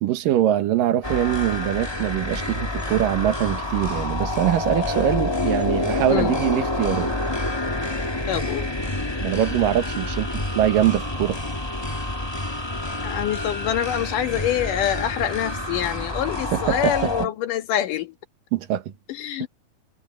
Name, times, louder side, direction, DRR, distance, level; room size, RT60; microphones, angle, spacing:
voice 1, 0.0-7.1 9.2-11.4 16.5-17.3 18.5-18.9 19.4-19.5, right 12 dB, 80° right, 2.9 m, -23 dB
sound 1, 1.0-17.3, left 2 dB, 45° left, 0.3 m, -27 dB
voice 2, 8.3-8.7 13.0-18.1 19.1-19.5, left 11 dB, 70° left, 2.9 m, -26 dB
omnidirectional pair, 3.9 m